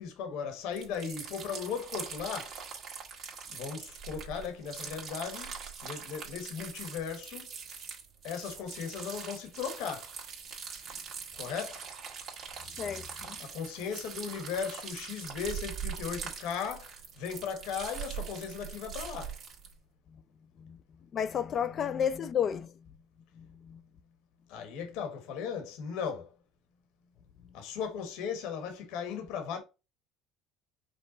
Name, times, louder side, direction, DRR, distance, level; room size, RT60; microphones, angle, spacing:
voice 1, 0.0-2.6 3.5-7.5 8.2-10.1 11.3-11.9 13.4-19.4 24.5-26.4 27.5-29.6, left 6 dB, 75° left, 1.2 m, -37 dB
sound 1, 0.7-19.7, right 6 dB, 45° right, 1.5 m, -42 dB
voice 2, 12.8-13.4 20.6-20.8 21.1-23.0 23.3-23.8 27.4-27.6, left 8 dB, 45° left, 0.5 m, -32 dB
5.3 x 2.1 x 3.9 m
supercardioid pair, 110°, 0 cm